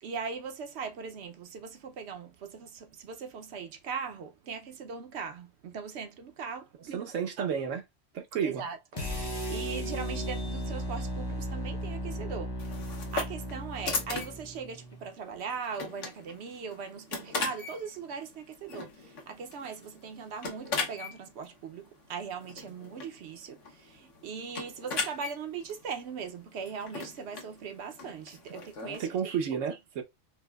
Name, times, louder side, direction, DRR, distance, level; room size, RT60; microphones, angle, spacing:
voice 1, 0.0-7.1 7.4-7.5 8.4-29.4, right 6 dB, 65° right, 0.9 m, -40 dB
voice 2, 6.9-7.8 8.1-8.6 29.0-30.0, right 7 dB, 85° right, 1.2 m, -31 dB
sound 1, 8.9-15.1, equal, 25° left, 0.7 m, -36 dB
sound 2, 12.6-29.1, left 4 dB, 80° left, 1.3 m, -39 dB
4.8 x 2.1 x 2.3 m
omnidirectional pair, 1.3 m